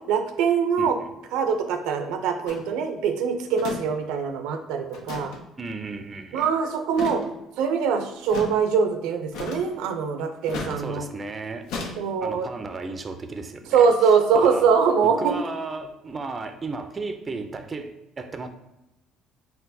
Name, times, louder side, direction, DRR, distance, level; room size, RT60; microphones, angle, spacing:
voice 1, 0.1-1.0 1.3-5.3 6.3-7.2 7.6-11.0 12.0-12.5 13.7-15.3, right 6 dB, 85° right, 6 dB, 0.5 m, -23 dB
voice 2, 0.8-1.1 5.6-6.5 10.8-11.7 12.2-14.7 15.0-18.5, right 3 dB, 30° right, 7 dB, 0.4 m, -34 dB
sound 1, 2.5-2.7 3.6-3.8 4.1-4.2 4.9-5.4 6.9-7.3 8.3-8.5 9.3-9.8 10.5-10.8 11.7-11.9, left 4 dB, 80° left, 0.7 m, -33 dB
4.3 x 3.7 x 2.7 m, 0.93 s
cardioid pair, 100°, 0 cm